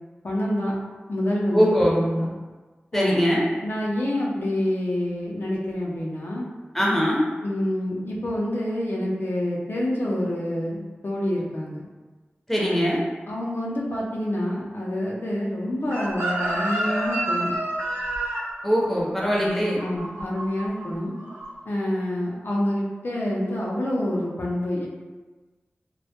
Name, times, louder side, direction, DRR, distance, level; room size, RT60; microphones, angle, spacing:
voice 1, 0.2-0.7 1.1-2.3 2.9-6.5 7.4-11.8 12.6-13.0 13.3-17.5 19.8-21.1 21.7-24.9, left 1 dB, 65° left, -4 dB, 0.5 m, -27 dB
voice 2, 1.5-2.0 2.9-3.4 6.7-7.2 12.5-13.0 18.6-19.8, equal, 5° left, -4 dB, 0.6 m, -21 dB
Chicken rooster, 15.9-20.9 21.1-21.5, right 1 dB, 80° right, 0.5 m, -28 dB
2.2 x 2.1 x 2.8 m, 1.3 s
cardioid pair, 40°, 4 cm